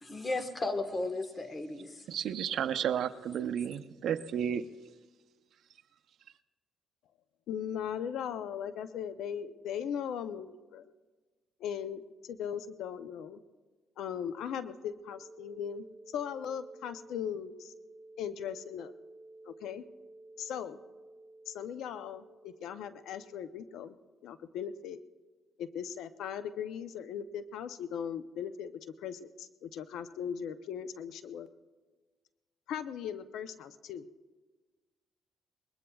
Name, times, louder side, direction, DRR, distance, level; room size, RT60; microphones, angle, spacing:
voice 1, 0.0-2.0, left 2 dB, 30° left, 8 dB, 1.3 m, -35 dB
voice 2, 2.1-4.6, right 9 dB, 70° right, 10 dB, 0.6 m, -32 dB
voice 3, 7.5-10.8 11.6-13.4 14.0-17.7 18.2-18.9 19.4-19.8 20.4-20.8 21.5-23.9 24.2-25.0 25.6-31.5 32.7-34.1, left 8 dB, 80° left, 11 dB, 0.6 m, -38 dB
sound 1, 15.0-23.4, right 2 dB, 25° right, 2.8 m, -54 dB
24.0 x 21.0 x 2.3 m, 1.3 s
cardioid pair, 90°, 0 cm